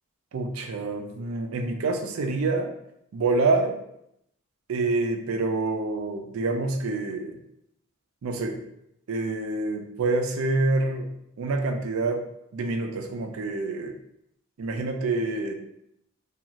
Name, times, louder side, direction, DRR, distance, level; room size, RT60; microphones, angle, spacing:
voice 1, 0.3-2.7 3.1-3.8 4.7-7.4 8.2-8.6 9.1-11.1 11.4-12.2 12.5-13.9 14.6-15.5, right 3 dB, 70° right, 5 dB, 0.4 m, -27 dB
2.5 x 2.4 x 2.9 m, 0.77 s
head